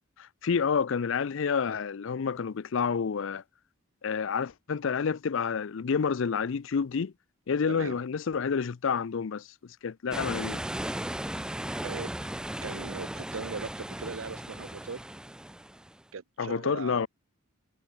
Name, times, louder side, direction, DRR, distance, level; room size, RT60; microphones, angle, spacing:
voice 1, 0.2-3.4 4.0-7.1 7.5-10.6 16.4-17.1, left 6 dB, 65° left, 0.5 m, -29 dB
voice 2, 7.7-8.0 11.8-12.1 12.6-15.0 16.1-17.1, right 5 dB, 70° right, 0.7 m, -39 dB
sound 1, 10.1-16.0, right 1 dB, 5° right, 0.3 m, -36 dB
head